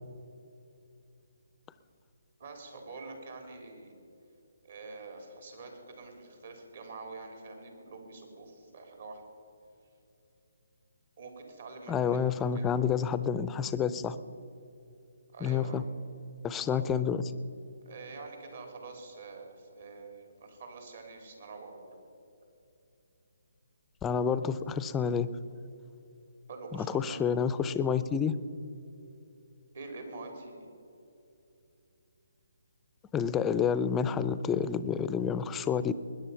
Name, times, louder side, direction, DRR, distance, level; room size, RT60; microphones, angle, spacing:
voice 1, 2.4-3.9 4.6-9.2 11.2-12.2 12.5-12.7 15.3-15.8 16.7-16.8 17.9-22.0 26.5-27.2 29.7-30.7, right 3 dB, 60° right, 3 dB, 3.7 m, -46 dB
voice 2, 11.9-14.2 15.4-15.8 16.4-17.2 24.0-25.3 26.7-28.3 33.1-35.9, left 7 dB, 15° left, 14 dB, 0.5 m, -29 dB
21.0 x 10.0 x 5.8 m, 2.8 s
figure-of-eight pair, 145°, 0 cm